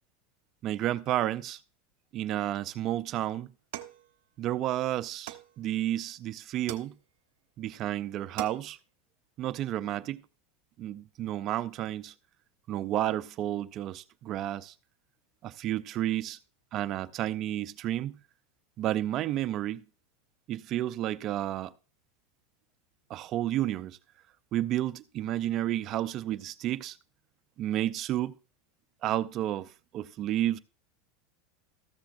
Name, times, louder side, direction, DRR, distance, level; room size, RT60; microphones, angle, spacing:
voice 1, 0.6-1.6 2.1-3.5 4.4-6.9 7.6-8.8 9.4-10.2 10.8-12.1 12.7-14.7 15.4-16.4 16.7-18.2 18.8-19.8 20.5-21.7 23.1-24.0 24.5-27.0 27.6-28.3 29.0-30.6, right 13 dB, 40° right, 0.4 m, -31 dB
sound 1, 3.7-4.7 5.3-6.0 6.7-7.4 7.9-8.0 8.2-8.9, right 14 dB, 70° right, 0.7 m, -44 dB
14.0 x 7.0 x 2.5 m
supercardioid pair, 140°, 0 cm